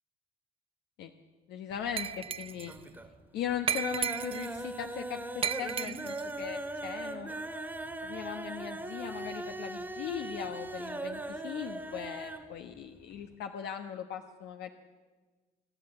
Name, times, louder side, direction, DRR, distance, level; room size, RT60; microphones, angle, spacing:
voice 1, 1.5-2.7 3.3-7.3 8.0-14.7, left 9 dB, 80° left, 5 dB, 1.2 m, -39 dB
sound 1, 1.7-2.3 2.6-3.1 3.5-12.5 12.8-12.9 13.2-13.3, right 2 dB, 10° right, 1.6 m, -39 dB
Glass, 2.0-2.8 3.7-4.6 5.4-6.3, right 8 dB, 35° right, 0.6 m, -34 dB
27.0 x 11.5 x 8.9 m, 1.4 s
cardioid pair, 110°, 17 cm